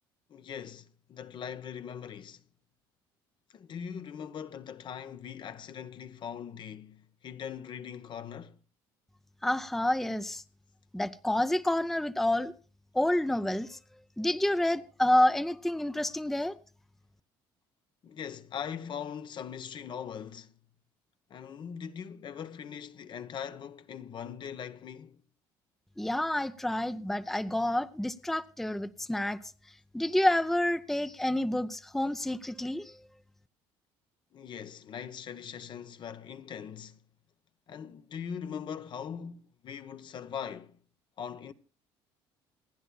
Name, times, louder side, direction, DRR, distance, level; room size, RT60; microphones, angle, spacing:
voice 1, 0.3-2.4 3.5-8.6 18.0-20.5 21.3-25.2 34.3-37.0 37.7-40.7 41.2-41.5, left 8 dB, 50° left, 0.9 m, -41 dB
voice 2, 9.4-10.4 10.9-12.5 12.9-13.8 14.2-16.6 26.0-29.4 29.9-33.0, left 1 dB, 5° left, 0.6 m, -28 dB
27.0 x 10.0 x 2.3 m
supercardioid pair, 80°, 10 cm